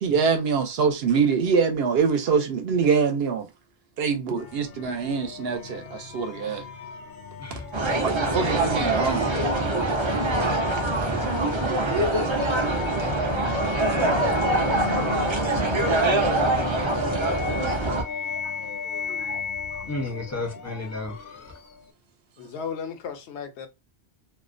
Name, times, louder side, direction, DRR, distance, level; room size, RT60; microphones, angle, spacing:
voice 1, 0.0-3.5 4.0-6.6 8.0-9.3 10.4-10.5 12.2-12.7 14.9-15.1 17.3-17.4 17.6-18.0 19.1-19.4 19.7-19.8, right 5 dB, 70° right, 0.8 m, -25 dB
sound 1, 4.4-21.9, left 6 dB, 60° left, 0.7 m, -35 dB
sound 2, 7.7-18.0, right 2 dB, 40° right, 0.4 m, -24 dB
voice 2, 11.0-11.3 19.9-21.1, left 2 dB, 20° left, 0.5 m, -33 dB
voice 3, 22.4-23.7, left 6 dB, 85° left, 0.9 m, -35 dB
2.4 x 2.0 x 2.5 m
omnidirectional pair, 1.1 m